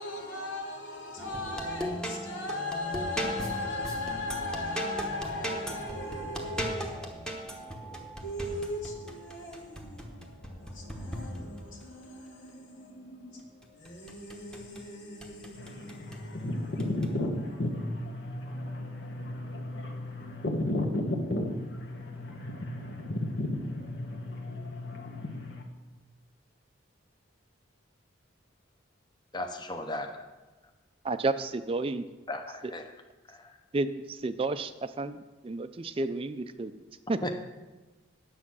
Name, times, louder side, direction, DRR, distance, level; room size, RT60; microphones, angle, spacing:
voice 1, 0.0-20.1, left 2 dB, 90° left, 2.4 m, -40 dB
sound 1, 1.2-11.8 13.6-14.8 15.2-16.2 16.8-17.1, equal, 5° left, 1.0 m, -38 dB
sound 2, 15.6-25.6, left 1 dB, 65° left, 1.3 m, -34 dB
voice 2, 29.3-30.3 32.3-32.9 33.3-33.6 37.2-37.3, left 1 dB, 20° left, 0.7 m, -36 dB
voice 3, 31.0-32.1 33.7-37.2, right 3 dB, 30° right, 0.4 m, -32 dB
9.8 x 7.1 x 6.1 m
head